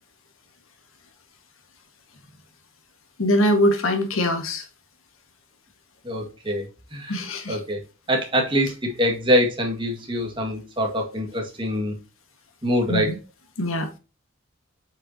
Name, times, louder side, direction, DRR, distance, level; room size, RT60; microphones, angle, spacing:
voice 1, 3.2-4.6 7.1-7.6 12.9-13.2 13.6-14.0, left 1 dB, 90° left, 1.5 m, -22 dB
voice 2, 6.0-6.6 6.9-7.2 7.5-7.8 8.1-12.0 12.6-13.1, equal, 25° right, 1.8 m, -24 dB
8.1 x 5.5 x 2.8 m
head